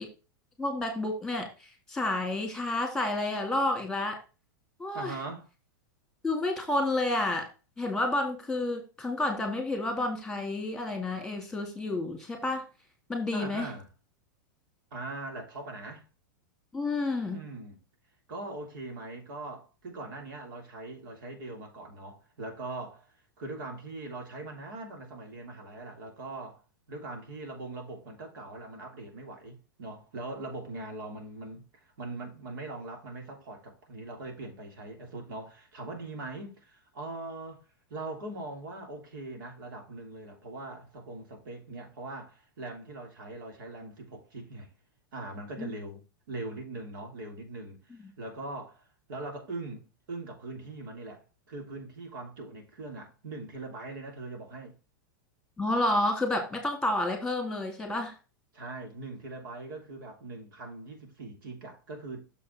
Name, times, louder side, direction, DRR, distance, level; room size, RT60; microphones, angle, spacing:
voice 1, 0.6-1.5 1.9-4.2 4.8-5.2 6.2-7.5 7.8-12.6 13.1-13.7 16.7-17.4 45.6-45.7 55.6-58.1, left 2 dB, 5° left, 2.6 m, -30 dB
voice 2, 4.9-5.5 13.3-13.9 14.9-16.1 17.3-17.8 18.3-26.6 26.9-44.7 45.1-54.8 58.5-62.3, right 2 dB, 75° right, 3.1 m, -41 dB
6.9 x 5.3 x 4.4 m
hypercardioid pair, 130°, 11 cm